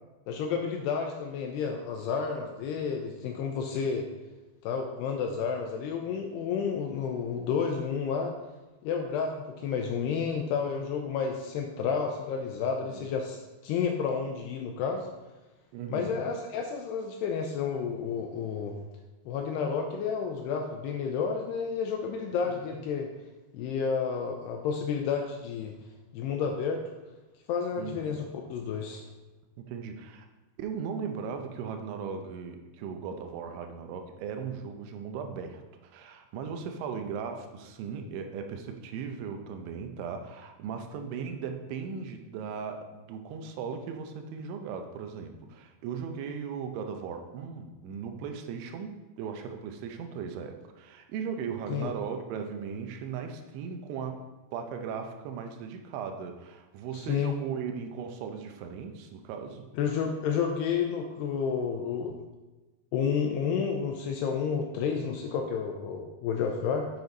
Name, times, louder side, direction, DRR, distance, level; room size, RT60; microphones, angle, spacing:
voice 1, 0.3-4.1 4.6-8.3 8.8-15.1 15.9-18.8 19.3-23.1 23.5-25.7 26.1-26.8 27.5-29.0 51.7-51.9 56.9-57.3 59.8-62.2 62.9-66.9, left 6 dB, 85° left, 3 dB, 2.4 m, -31 dB
voice 2, 15.7-16.2 22.4-22.5 27.8-28.1 29.6-30.3 30.6-54.3 54.5-59.7, right 6 dB, 85° right, 5 dB, 3.2 m, -37 dB
7.7 x 7.0 x 4.0 m, 1.2 s
omnidirectional pair, 5.3 m